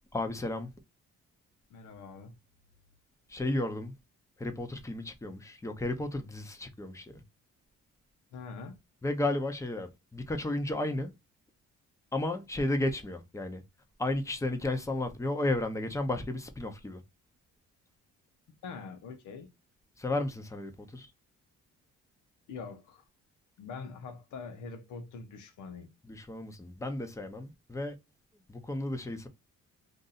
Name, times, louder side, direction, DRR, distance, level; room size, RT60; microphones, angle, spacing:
voice 1, 0.1-0.7 3.3-3.9 4.4-7.2 9.0-11.1 12.1-13.6 14.0-17.0 20.0-21.1 26.0-28.0 28.5-29.3, left 2 dB, 10° left, 0.8 m, -33 dB
voice 2, 1.7-2.4 8.3-8.7 18.6-19.5 22.5-23.0 23.6-25.9, left 5 dB, 80° left, 0.8 m, -43 dB
2.6 x 2.6 x 3.9 m
cardioid pair, 75°, 31 cm